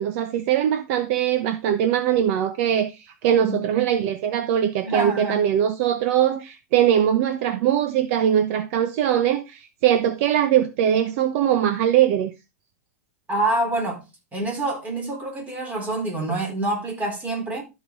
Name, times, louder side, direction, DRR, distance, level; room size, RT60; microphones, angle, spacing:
voice 1, 0.0-12.3, right 10 dB, 55° right, 1.0 m, -21 dB
voice 2, 4.8-5.4 13.3-14.0 14.3-17.6, right 2 dB, 15° right, 4.0 m, -26 dB
12.5 x 5.4 x 3.8 m
supercardioid pair, 135°, 8 cm